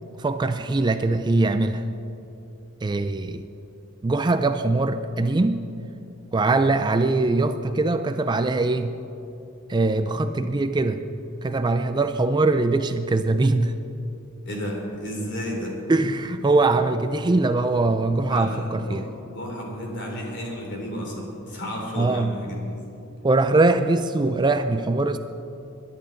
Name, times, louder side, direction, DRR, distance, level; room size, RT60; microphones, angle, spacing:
voice 1, 0.2-1.9 2.8-3.4 4.0-5.7 6.3-9.0 9.7-11.0 11.4-13.7 15.9-19.1 22.0-22.4 23.2-25.2, right 2 dB, 20° right, 9 dB, 0.4 m, -22 dB
voice 2, 14.4-15.8 17.2-17.4 18.2-22.8, equal, 55° left, -1 dB, 3.1 m, -33 dB
22.0 x 11.0 x 4.0 m, 2.8 s
head